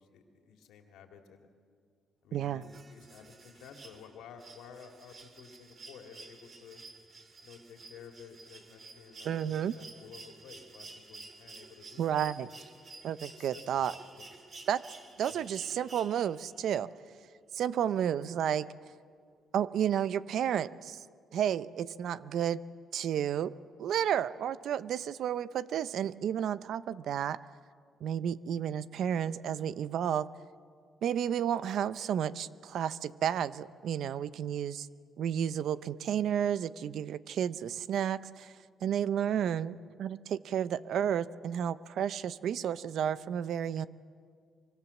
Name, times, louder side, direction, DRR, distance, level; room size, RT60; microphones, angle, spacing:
voice 1, 0.0-1.5 2.2-6.8 7.4-12.1 13.3-14.3 15.3-15.5 39.3-39.5, left 6 dB, 90° left, 4 dB, 2.8 m, -53 dB
voice 2, 2.3-2.6 9.2-9.7 12.0-12.5 13.0-13.9 14.7-14.8 15.2-16.9 17.5-18.7 19.5-21.0 21.3-22.6 22.9-27.4 28.0-30.3 31.0-34.9 35.2-38.5 38.8-43.9, right 9 dB, 70° right, 16 dB, 0.7 m, -32 dB
sound 1, 2.6-16.5 18.0-18.1, right 3 dB, 45° right, 3.3 m, -51 dB
25.0 x 25.0 x 7.2 m, 2.1 s
cardioid pair, 90°, 0 cm